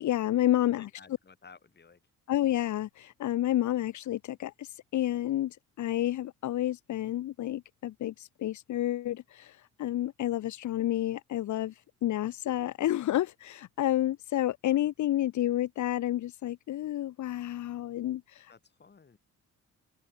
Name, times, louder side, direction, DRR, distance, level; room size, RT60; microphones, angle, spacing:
voice 1, 0.0-0.9 2.3-18.5, left 13 dB, 70° left, 1.3 m, -30 dB
voice 2, 0.6-2.0 18.5-19.2, left 5 dB, 35° left, 6.5 m, -55 dB
open air
cardioid pair, 90°, 30 cm